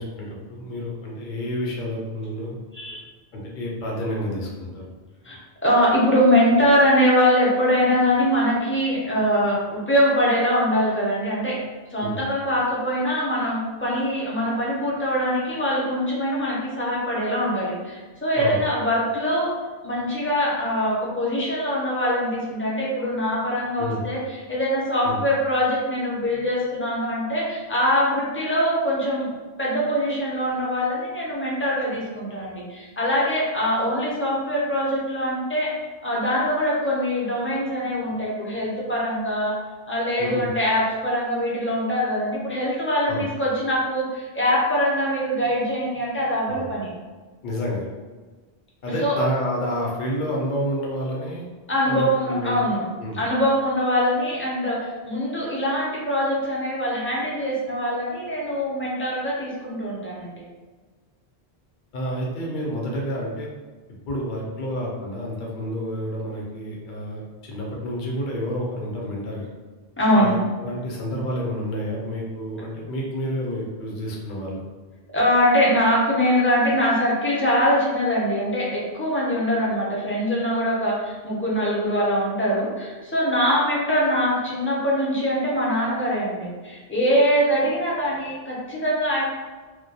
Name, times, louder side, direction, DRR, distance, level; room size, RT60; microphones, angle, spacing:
voice 1, 0.0-2.5 3.3-4.8 12.0-12.2 18.4-18.6 23.8-24.0 25.0-25.2 40.2-40.5 43.1-43.2 46.5-46.6 47.4-47.9 48.8-51.5 51.9-52.6 53.0-53.2 61.9-63.5 64.1-69.5 70.1-74.6, equal, 60° left, -3 dB, 0.7 m, -29 dB
voice 2, 5.2-11.6 11.9-19.5 19.8-29.3 29.6-35.7 36.0-39.5 39.9-46.9 49.0-49.2 51.7-52.8 53.1-60.4 70.0-70.4 75.1-89.2, equal, 20° left, -6 dB, 0.4 m, -23 dB
2.2 x 2.1 x 2.7 m, 1.4 s
omnidirectional pair, 1.0 m